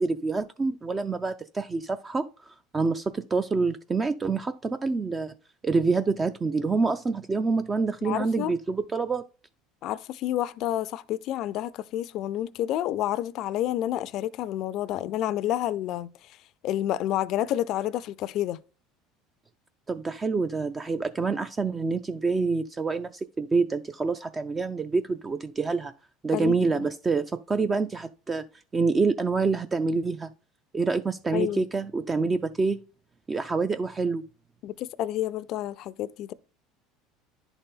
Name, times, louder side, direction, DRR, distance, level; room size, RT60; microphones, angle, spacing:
voice 1, 0.0-5.3 5.6-9.2 19.9-25.9 26.2-28.5 28.7-30.3 30.7-32.8 33.3-34.2, right 4 dB, 20° right, 0.3 m, -27 dB
voice 2, 8.0-8.5 9.8-16.1 16.6-18.6 26.3-26.5 31.3-31.6 34.6-36.3, left 13 dB, 55° left, 0.4 m, -29 dB
10.5 x 4.0 x 3.7 m
supercardioid pair, 120°, 0 cm